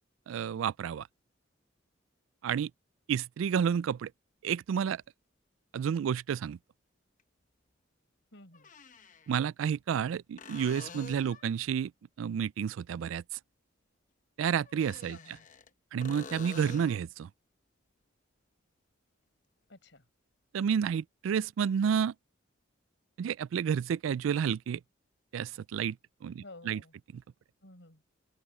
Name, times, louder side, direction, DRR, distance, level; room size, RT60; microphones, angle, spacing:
voice 1, 0.3-1.1 2.4-2.7 3.1-4.1 4.4-5.0 5.7-6.6 9.3-11.9 12.2-13.2 14.4-15.2 15.9-17.3 20.5-22.1 23.2-24.8 25.3-26.0 26.2-26.8 27.1-27.2, right 7 dB, 80° right, 0.3 m, -30 dB
sound 1, 5.0-5.1 7.2-7.3 8.5-9.3 10.4-11.5 14.7-15.7 16.0-17.1 20.7-20.8, left 4 dB, 40° left, 0.8 m, -47 dB
voice 2, 8.3-8.7 15.0-15.5 19.7-20.0 26.4-26.9 27.6-28.0, left 2 dB, 65° left, 5.9 m, -52 dB
open air
head